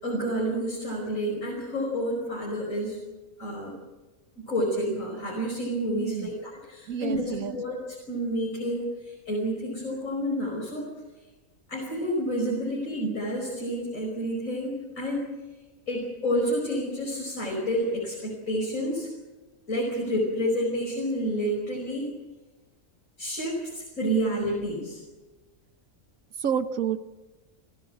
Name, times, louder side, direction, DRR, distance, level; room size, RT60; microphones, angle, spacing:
voice 1, 0.0-3.0 3.4-3.7 4.4-10.9 11.7-15.3 15.9-19.1 19.7-22.1 23.2-25.0, equal, 75° left, -2 dB, 5.9 m, -29 dB
voice 2, 6.0-6.3 6.9-7.5 26.4-27.0, right 8 dB, 85° right, 10 dB, 1.5 m, -29 dB
29.0 x 15.0 x 7.9 m, 1.2 s
omnidirectional pair, 1.4 m